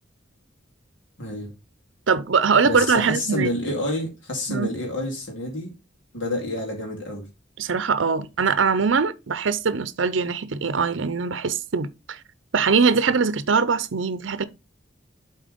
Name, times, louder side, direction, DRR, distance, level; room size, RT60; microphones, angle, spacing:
voice 1, 1.2-1.5 2.6-5.7 6.1-7.3, left 1 dB, 75° left, 2.7 m, -28 dB
voice 2, 2.1-3.5 4.5-4.7 7.6-12.2 12.5-14.4, right 5 dB, 75° right, 0.6 m, -22 dB
7.6 x 4.3 x 5.1 m
head